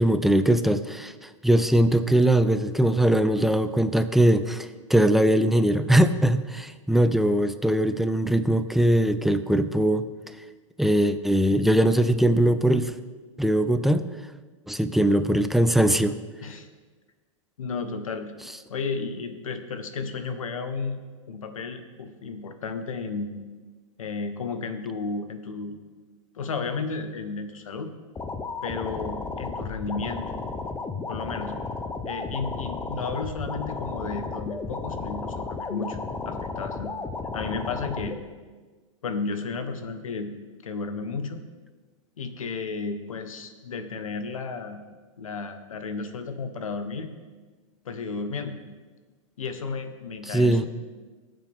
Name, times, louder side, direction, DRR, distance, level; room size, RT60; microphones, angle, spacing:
voice 1, 0.0-10.0 10.8-12.9 13.4-14.1 14.7-16.2 50.3-50.7, right 1 dB, ahead, 10 dB, 0.5 m, -21 dB
voice 2, 17.6-18.3 18.7-21.0 21.3-23.3 24.0-25.7 26.3-27.9 28.6-30.3 31.1-31.5 32.0-36.0 36.2-36.9 37.3-38.2 39.0-40.3 40.6-41.4 42.2-44.8 45.2-47.1 47.8-48.6 49.4-50.7, left 4 dB, 90° left, 8 dB, 1.3 m, -33 dB
sound 1, 28.2-38.2, left 4 dB, 15° left, 0.9 m, -33 dB
19.0 x 7.5 x 3.6 m, 1.4 s
hypercardioid pair, 120°, 17 cm